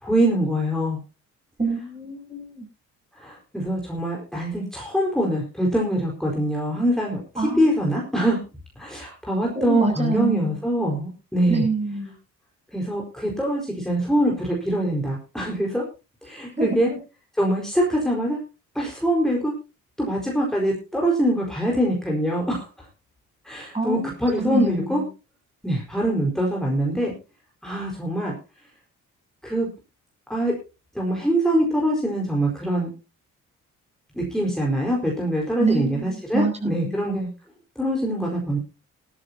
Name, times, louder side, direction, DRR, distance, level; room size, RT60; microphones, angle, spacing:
voice 1, 0.0-1.0 3.2-8.4 8.8-11.6 12.7-15.8 16.2-16.9 17.4-18.4 18.7-19.5 20.0-22.9 23.4-25.0 25.6-27.1 27.6-28.3 29.4-29.7 30.3-30.5 30.9-32.9 34.1-37.3 37.8-38.6, right 1 dB, ahead, -2 dB, 4.6 m, -24 dB
voice 2, 1.6-2.7 7.4-7.9 9.5-10.5 11.5-12.1 16.6-17.0 23.7-24.1 24.4-25.0 35.6-37.2, right 2 dB, 20° right, 3 dB, 7.6 m, -26 dB
18.5 x 13.5 x 2.8 m, 0.30 s
cardioid pair, 90°, 30 cm